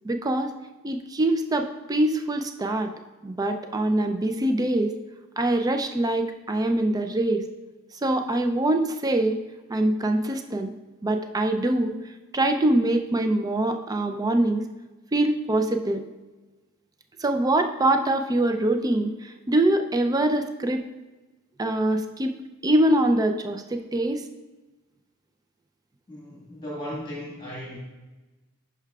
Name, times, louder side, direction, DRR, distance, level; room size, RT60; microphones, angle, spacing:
voice 1, 0.0-0.5 0.8-2.9 3.2-4.9 5.4-7.4 8.0-9.4 9.7-10.7 11.0-11.9 12.3-14.6 15.1-16.0 17.2-20.8 21.6-22.3 22.6-24.2, right 1 dB, 15° right, 6 dB, 0.4 m, -24 dB
voice 2, 26.1-27.8, equal, 20° left, -5 dB, 1.5 m, -36 dB
10.5 x 5.7 x 2.3 m, 1.2 s
head